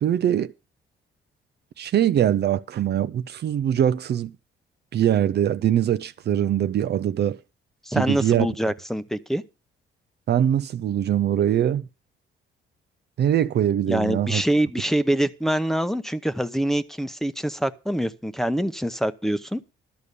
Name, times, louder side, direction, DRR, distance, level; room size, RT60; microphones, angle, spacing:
voice 1, 0.0-0.5 1.8-4.3 4.9-7.4 7.9-8.5 10.3-11.9 13.2-14.4, right 10 dB, 55° right, 0.6 m, -22 dB
voice 2, 7.9-9.4 13.9-19.6, right 1 dB, ahead, 0.9 m, -25 dB
12.5 x 5.1 x 8.3 m
cardioid pair, 90°, 20 cm